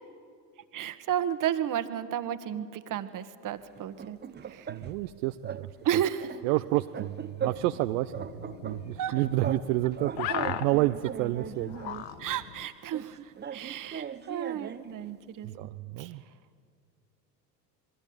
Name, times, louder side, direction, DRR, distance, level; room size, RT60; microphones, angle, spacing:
voice 1, 0.7-4.9 5.8-6.4 8.9-9.1 12.2-15.5 16.0-16.3, right 10 dB, 40° right, 11 dB, 1.6 m, -33 dB
sound 1, 3.7-5.1 5.4-5.7 5.9-7.8 8.1-9.7 9.9-12.1 12.9-14.9, right 8 dB, 20° right, 1.0 m, -39 dB
voice 2, 4.7-5.7 6.4-11.7 15.4-16.2, right 17 dB, 60° right, 8 dB, 0.9 m, -29 dB
sound 2, 7.4-12.7, left 11 dB, 55° left, 1.4 m, -39 dB
27.0 x 21.5 x 8.8 m, 2.2 s
hypercardioid pair, 80°, 49 cm